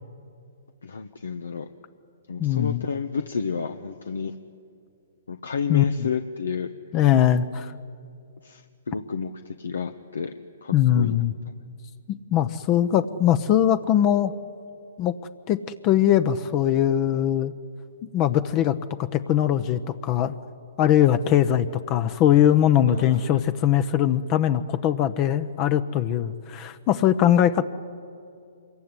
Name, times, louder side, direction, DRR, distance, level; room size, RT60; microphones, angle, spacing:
voice 1, 0.8-1.7 2.3-4.3 5.3-6.7 8.4-10.3 10.6-11.2 22.9-23.4, left 6 dB, 80° left, 7 dB, 1.3 m, -31 dB
voice 2, 2.4-2.8 5.7-6.1 6.9-7.7 10.7-11.3 12.3-14.3 15.0-15.1 15.5-15.6 15.8-17.5 18.1-20.3 20.8-27.6, left 10 dB, 30° left, 11 dB, 0.9 m, -21 dB
26.0 x 22.5 x 9.9 m, 2.4 s
hypercardioid pair, 135°, 0 cm